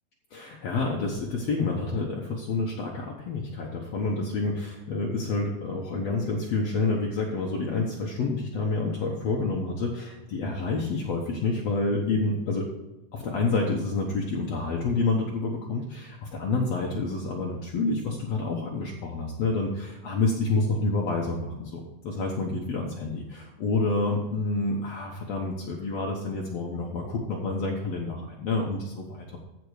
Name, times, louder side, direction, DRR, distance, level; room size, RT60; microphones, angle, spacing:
voice 1, 0.3-12.7 13.1-29.4, left 3 dB, 60° left, -2 dB, 2.1 m, -28 dB
14.5 x 5.3 x 4.8 m, 1.1 s
omnidirectional pair, 3.7 m